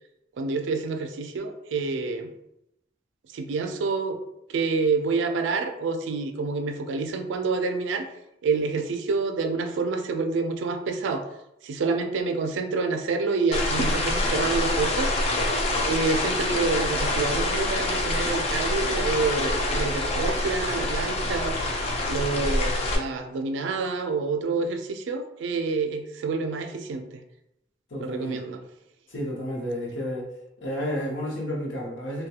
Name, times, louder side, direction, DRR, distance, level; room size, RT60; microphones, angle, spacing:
voice 1, 0.4-2.3 3.3-4.2 4.5-8.1 8.4-11.2 11.6-15.2 15.9-21.6 22.0-27.0 28.0-28.6, right 4 dB, 80° right, 6 dB, 0.3 m, -27 dB
sound 1, 13.5-23.0, left 1 dB, 35° left, 0.4 m, -26 dB
voice 2, 27.9-28.4 29.1-30.3 30.6-32.3, equal, 85° left, -2 dB, 0.7 m, -31 dB
2.3 x 2.2 x 2.8 m, 0.85 s
head